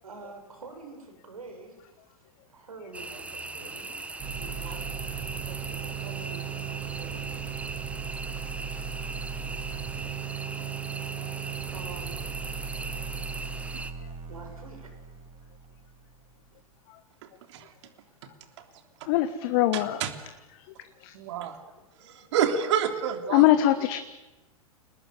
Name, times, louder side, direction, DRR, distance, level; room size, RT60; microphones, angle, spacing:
voice 1, 0.0-4.0 4.4-7.4 11.7-12.2 14.3-14.9 16.5-16.6, right 3 dB, 70° right, 5 dB, 7.5 m, -47 dB
sound 1, 2.9-13.9, right 3 dB, 5° right, 1.4 m, -39 dB
sound 2, 4.2-16.0, right 7 dB, 30° right, 5.5 m, -37 dB
voice 2, 19.1-20.0 21.0-21.1 23.3-24.0, left 13 dB, 40° left, 10 dB, 1.5 m, -22 dB
voice 3, 19.7-20.1 21.1-21.6 22.0-23.4, right 8 dB, 50° right, 6 dB, 3.4 m, -28 dB
29.5 x 19.5 x 9.4 m, 1.1 s
figure-of-eight pair, 100°, 19 cm